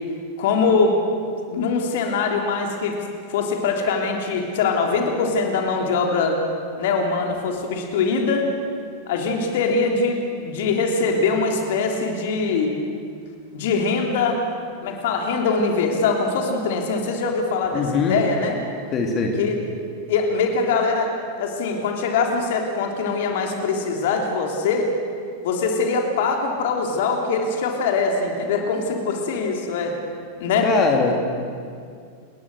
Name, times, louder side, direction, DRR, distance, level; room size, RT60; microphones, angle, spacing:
voice 1, 0.4-1.0 1.3-3.0 3.3-6.4 6.8-8.5 9.1-12.8 13.5-14.4 14.8-18.6 19.4-19.6 20.1-21.1 21.4-24.9 25.4-29.9 30.4-30.7, left 4 dB, 55° left, 2 dB, 3.5 m, -22 dB
voice 2, 17.7-18.2 18.9-19.4 30.6-31.2, left 5 dB, 30° left, 1 dB, 3.1 m, -21 dB
30.0 x 20.5 x 6.6 m, 2.3 s
figure-of-eight pair, 90°, 0 cm